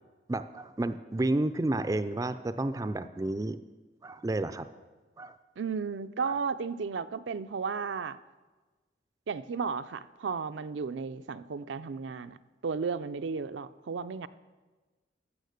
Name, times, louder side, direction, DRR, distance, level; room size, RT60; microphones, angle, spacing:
voice 1, 0.3-3.6 4.0-4.7 5.2-5.4 6.2-6.4, right 2 dB, 20° right, 11 dB, 0.3 m, -31 dB
voice 2, 5.6-8.2 9.3-12.4 12.6-14.3, right 5 dB, 80° right, 11 dB, 0.4 m, -34 dB
13.5 x 7.2 x 6.5 m, 1.3 s
head